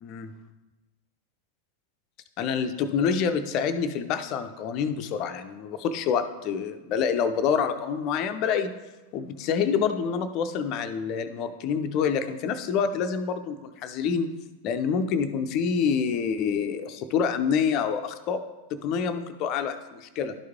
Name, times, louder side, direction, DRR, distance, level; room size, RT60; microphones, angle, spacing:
voice 1, 0.0-0.3 2.4-8.7 9.1-14.3 14.6-18.4 18.7-20.3, left 6 dB, 40° left, 8 dB, 0.5 m, -27 dB
11.5 x 4.6 x 3.6 m, 1.1 s
figure-of-eight pair, 90°, 0 cm